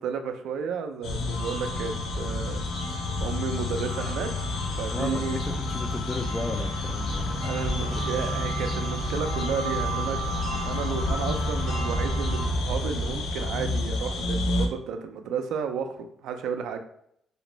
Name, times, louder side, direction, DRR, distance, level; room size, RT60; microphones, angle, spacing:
voice 1, 0.0-2.6 3.2-4.3 4.8-5.4 7.4-10.2 10.6-16.8, right 6 dB, 85° right, 7 dB, 0.3 m, -32 dB
sound 1, 1.0-14.7, left 2 dB, 85° left, 0.5 m, -29 dB
sound 2, 1.3-12.5, right 1 dB, 65° left, 1.3 m, -37 dB
voice 2, 4.9-7.5 7.9-8.3, left 2 dB, 20° left, 6 dB, 0.4 m, -35 dB
2.5 x 2.0 x 3.0 m, 0.70 s
cardioid pair, 90°, 0 cm